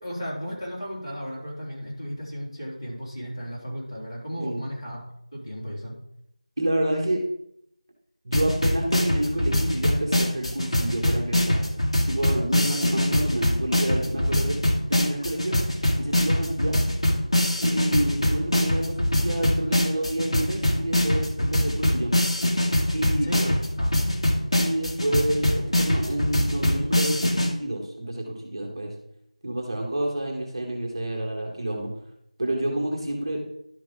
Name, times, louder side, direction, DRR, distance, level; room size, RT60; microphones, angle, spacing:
voice 1, 0.0-5.0 5.3-6.0 12.5-12.7 23.1-24.0, equal, 35° left, -7 dB, 3.9 m, -34 dB
voice 2, 6.6-7.2 8.2-11.6 12.1-14.6 14.9-15.6 16.0-16.8 17.6-22.1 22.9-23.3 24.6-28.9 29.4-31.9 32.4-33.4, right 1 dB, 40° right, 0 dB, 1.7 m, -29 dB
sound 1, 8.3-27.5, left 1 dB, 50° left, 1.7 m, -23 dB
11.5 x 5.9 x 3.8 m, 0.76 s
figure-of-eight pair, 175°, 4 cm